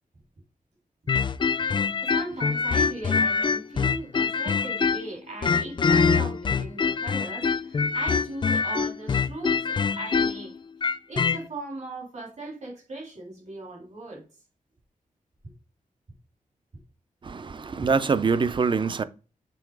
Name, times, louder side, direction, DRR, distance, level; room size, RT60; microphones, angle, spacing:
sound 1, 1.1-5.1 5.4-11.4, left 5 dB, 35° left, 0.3 m, -24 dB
voice 1, 2.0-10.5 11.1-14.2 15.4-15.5, right 2 dB, 55° right, 3.2 m, -38 dB
voice 2, 17.3-19.0, right 5 dB, 35° right, 0.4 m, -24 dB
7.0 x 3.9 x 4.6 m
wide cardioid pair, 155°, 14 cm